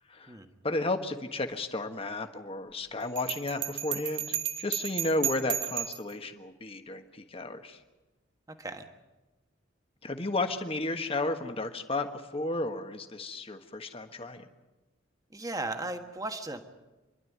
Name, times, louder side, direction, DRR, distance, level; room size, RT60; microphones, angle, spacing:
voice 1, 0.6-7.8 10.0-14.5, left 2 dB, 30° left, 6 dB, 1.4 m, -33 dB
Bell, 3.2-6.1, right 11 dB, 65° right, 1.2 m, -33 dB
voice 2, 15.3-16.6, right 2 dB, 20° right, 6 dB, 1.4 m, -36 dB
27.5 x 12.0 x 9.4 m, 1.1 s
head